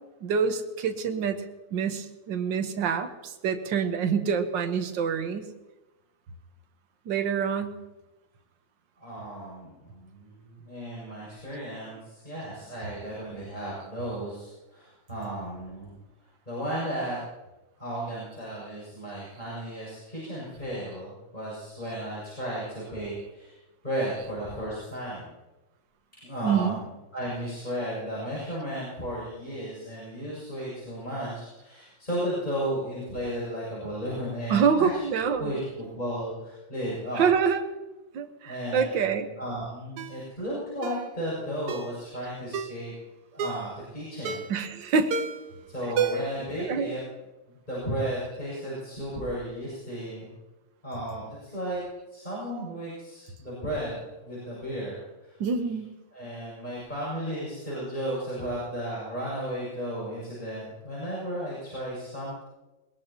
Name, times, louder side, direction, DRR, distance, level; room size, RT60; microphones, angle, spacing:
voice 1, 0.2-1.4 1.7-5.5 7.1-7.8 26.4-26.8 34.5-35.5 37.2-37.6 38.1-39.3 44.5-45.2 46.6-47.0 55.4-55.9, right 6 dB, 60° right, 7 dB, 1.8 m, -26 dB
voice 2, 9.0-16.0 16.5-17.2 17.8-23.6 23.8-25.3 26.2-26.9 27.1-35.0 35.4-37.3 38.4-39.1 39.4-42.9 43.3-44.4 45.7-47.0 47.5-50.3 50.8-51.8 52.1-55.3 56.1-62.4, right 1 dB, 20° left, -8 dB, 7.5 m, -34 dB
Ringtone, 40.0-40.2 40.8-41.1 41.7-41.9 42.5-42.8 43.4-43.7 44.3-44.6 45.1-45.5 46.0-46.4 46.7-46.8, right 6 dB, 80° right, 1.9 m, -30 dB
22.5 x 21.0 x 3.0 m, 1.1 s
omnidirectional pair, 2.4 m